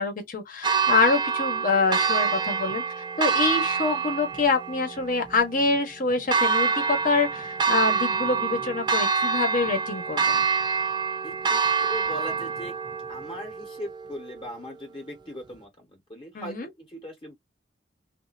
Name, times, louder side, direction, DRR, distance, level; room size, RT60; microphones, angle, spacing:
voice 1, 0.0-2.8 3.2-10.4 16.3-16.7, left 4 dB, 50° left, 1.1 m, -26 dB
Church bell, 0.6-14.6, right 5 dB, 25° right, 0.5 m, -26 dB
voice 2, 11.2-12.7 13.1-17.4, equal, 30° left, 1.1 m, -39 dB
3.3 x 2.5 x 2.5 m
head